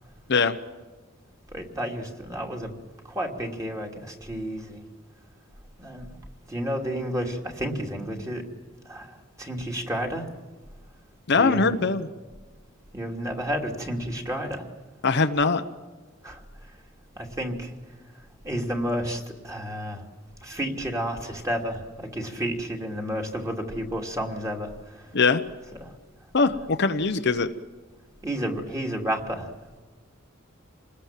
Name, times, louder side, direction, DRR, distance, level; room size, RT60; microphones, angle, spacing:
voice 1, 1.5-2.7 3.0-4.8 5.8-6.1 6.5-8.5 8.8-10.3 11.3-11.8 12.9-14.7 16.2-16.4 17.2-17.7 18.4-20.0 20.4-25.1 25.8-25.9 28.2-29.5, equal, 15° right, 1 dB, 2.8 m, -31 dB
voice 2, 11.3-12.1 15.0-15.6 25.1-25.4 26.3-27.5, left 4 dB, 55° left, 8 dB, 0.9 m, -21 dB
27.5 x 20.0 x 7.5 m, 1.3 s
head